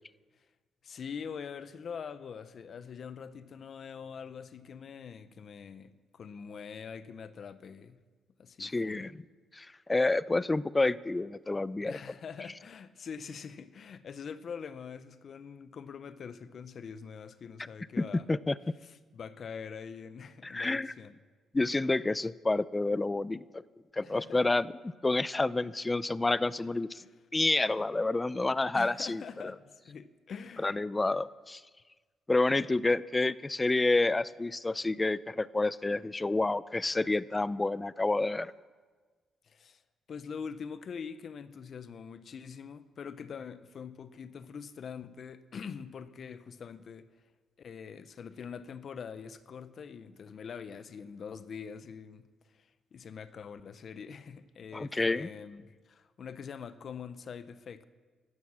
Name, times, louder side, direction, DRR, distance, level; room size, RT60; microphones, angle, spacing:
voice 1, 0.8-8.0 8.4-9.1 11.8-18.3 18.8-21.2 24.0-24.4 27.0-27.1 28.7-30.8 39.4-39.8 40.1-47.1 47.6-52.3 52.5-57.9, left 6 dB, 55° left, 0.8 m, -44 dB
voice 2, 8.6-9.1 9.5-11.9 18.0-18.5 20.4-20.9 21.5-23.6 23.9-24.7 25.0-27.0 27.3-29.2 30.6-31.6 32.3-38.5 54.7-55.3, left 2 dB, 20° left, 0.5 m, -29 dB
16.0 x 13.0 x 6.3 m
cardioid pair, 90°, 0 cm